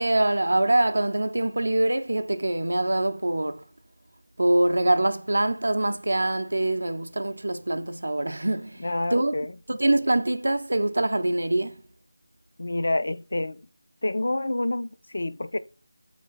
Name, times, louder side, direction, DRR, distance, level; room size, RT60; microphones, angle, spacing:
voice 1, 0.0-3.6 4.4-9.3 9.7-11.8, right 1 dB, 75° right, 0.5 m, -24 dB
voice 2, 8.8-9.5 12.6-13.6 14.0-15.6, left 2 dB, 60° left, 0.4 m, -28 dB
3.8 x 3.2 x 3.9 m
figure-of-eight pair, 175°, 0 cm